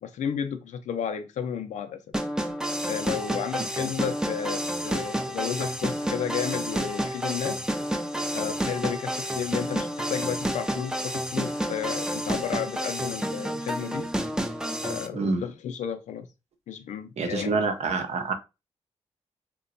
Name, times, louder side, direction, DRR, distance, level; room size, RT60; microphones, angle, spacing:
voice 1, 0.0-2.0 2.9-7.6 8.3-14.1 14.8-16.3 16.7-17.6, left 8 dB, 80° left, 0.4 m, -32 dB
sound 1, 2.1-15.1, equal, 5° right, 0.4 m, -30 dB
voice 2, 17.2-18.3, right 4 dB, 65° right, 0.6 m, -26 dB
2.8 x 2.2 x 2.5 m
supercardioid pair, 45°, 12 cm